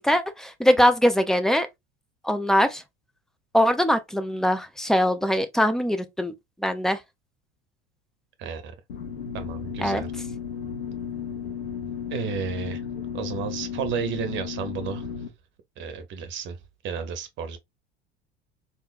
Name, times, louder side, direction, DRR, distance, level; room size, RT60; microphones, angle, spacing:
voice 1, 0.0-1.7 2.2-2.8 3.5-6.3 6.6-7.0 9.8-10.0, equal, ahead, 0.4 m, -22 dB
voice 2, 8.4-8.7 9.3-10.1 12.1-12.8 13.1-15.1 15.8-16.6 16.8-17.6, right 7 dB, 40° right, 0.8 m, -32 dB
sound 1, 8.9-15.3, left 7 dB, 75° left, 0.9 m, -34 dB
3.6 x 2.6 x 2.5 m
figure-of-eight pair, 70°, 30 cm